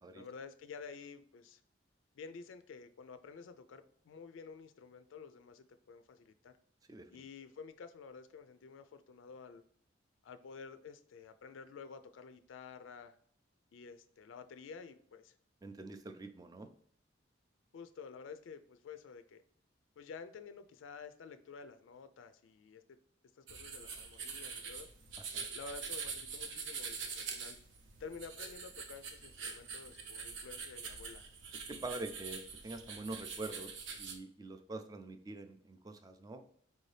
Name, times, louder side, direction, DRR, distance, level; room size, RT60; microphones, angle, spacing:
voice 1, 0.1-1.6 2.1-6.5 7.1-9.6 10.2-13.2 13.7-15.3 17.7-19.4 20.0-23.0 23.4-24.9 25.5-27.6 28.0-31.2, left 5 dB, 90° left, 10 dB, 0.4 m, -51 dB
voice 2, 6.9-7.2 15.6-16.7 25.2-25.5 31.5-36.5, right 2 dB, 20° right, 8 dB, 0.3 m, -45 dB
sound 1, 23.5-34.2, right 5 dB, 70° right, 0.6 m, -44 dB
4.5 x 2.7 x 3.2 m, 0.62 s
head